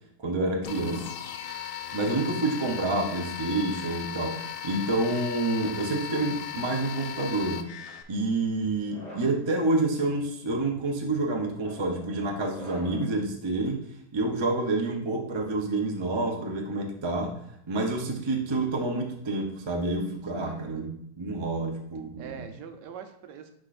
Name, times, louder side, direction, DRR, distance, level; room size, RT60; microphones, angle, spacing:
voice 1, 0.2-1.1 1.9-4.4 4.6-7.6 8.1-13.8 14.1-17.3 17.7-20.9 21.2-22.4, right 2 dB, 40° right, 1 dB, 0.4 m, -28 dB
sound 1, 0.6-8.0, left 10 dB, 75° left, 0.7 m, -37 dB
sound 2, 5.3-6.7 7.5-7.9 8.7-9.4 10.1-10.4 11.4-13.2, left 1 dB, 5° left, 1.5 m, -47 dB
voice 2, 20.3-20.7 22.2-23.5, right 6 dB, 85° right, 7 dB, 1.3 m, -43 dB
9.9 x 3.8 x 2.5 m, 0.72 s
omnidirectional pair, 1.8 m